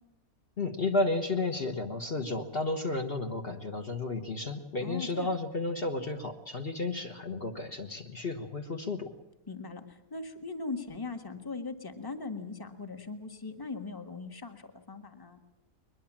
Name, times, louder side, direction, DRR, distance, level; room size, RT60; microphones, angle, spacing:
voice 1, 0.6-9.1, left 2 dB, 40° left, 4 dB, 1.5 m, -32 dB
voice 2, 4.8-5.3 9.5-15.4, left 3 dB, 15° left, 7 dB, 1.5 m, -40 dB
22.0 x 21.0 x 7.4 m, 0.98 s
omnidirectional pair, 1.5 m